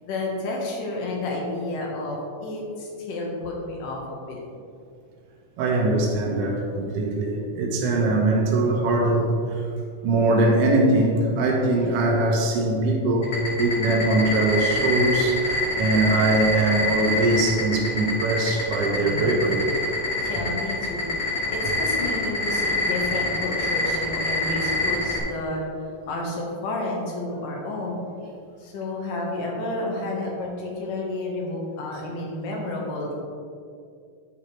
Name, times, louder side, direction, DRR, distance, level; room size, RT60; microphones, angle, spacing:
voice 1, 0.0-4.4 7.8-8.1 19.0-19.4 20.2-25.6 26.1-28.0 28.6-33.2, left 2 dB, 70° left, -1 dB, 3.0 m, -31 dB
voice 2, 5.6-9.3 10.0-13.3 13.6-19.6, right 2 dB, 65° right, -1 dB, 1.6 m, -22 dB
sound 1, 13.2-25.2, left 2 dB, 35° left, 2.4 m, -25 dB
10.0 x 8.2 x 3.3 m, 2.4 s
omnidirectional pair, 4.0 m